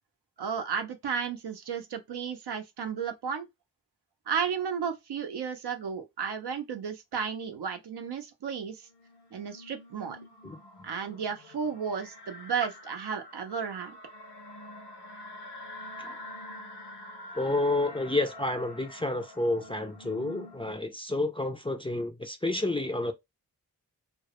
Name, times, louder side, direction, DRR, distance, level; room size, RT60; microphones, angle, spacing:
voice 1, 0.4-3.5 4.3-8.9 9.3-10.2 10.8-14.0, right 6 dB, 75° right, 0.6 m, -33 dB
sound 1, 8.9-20.7, left 1 dB, 80° left, 0.7 m, -46 dB
voice 2, 17.4-23.1, left 2 dB, 15° left, 0.3 m, -30 dB
2.1 x 2.0 x 2.9 m
cardioid pair, 40°, 40 cm